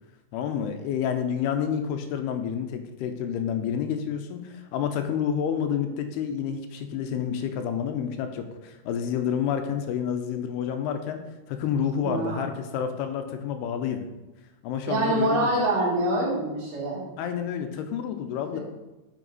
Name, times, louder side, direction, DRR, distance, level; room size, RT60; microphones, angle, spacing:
voice 1, 0.3-11.2 11.5-14.1 14.6-15.5 17.2-18.6, left 8 dB, 85° left, 7 dB, 2.7 m, -29 dB
voice 2, 12.0-12.5 14.9-17.0 18.5-18.6, right 1 dB, 75° right, -9 dB, 4.0 m, -25 dB
9.2 x 5.8 x 4.0 m, 1.0 s
omnidirectional pair, 4.6 m